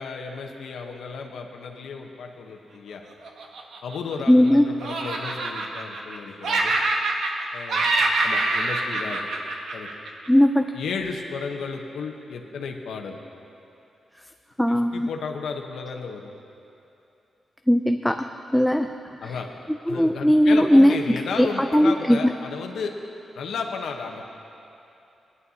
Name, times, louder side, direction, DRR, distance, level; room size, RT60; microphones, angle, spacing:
voice 1, 0.0-3.0 3.8-6.7 7.5-7.9 8.2-9.3 9.7-9.9 10.7-13.2 14.7-16.3 19.2-19.5 19.9-22.9 23.3-24.3, left 5 dB, 90° left, 3 dB, 1.0 m, -33 dB
Laughter, 3.2-4.5 4.8-6.2 6.4-7.4 7.7-10.3, right 2 dB, 75° right, 1.1 m, -25 dB
voice 2, 4.3-4.7 10.3-10.7 14.6-15.1 17.7-18.9 19.2-19.3 19.7-21.5 21.7-22.3, equal, 5° left, 5 dB, 0.3 m, -19 dB
19.5 x 11.0 x 2.8 m, 2.8 s
wide cardioid pair, 125°, 0 cm